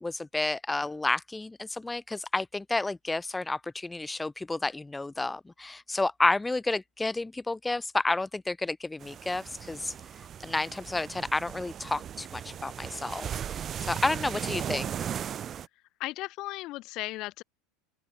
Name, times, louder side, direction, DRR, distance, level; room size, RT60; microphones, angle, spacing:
voice 1, 0.0-15.1, left 2 dB, 10° left, 1.4 m, -31 dB
sound 1, 9.0-15.7, right 9 dB, 35° right, 0.6 m, -37 dB
voice 2, 16.0-17.4, left 18 dB, 55° left, 3.5 m, -36 dB
open air
hypercardioid pair, 85°, 0 cm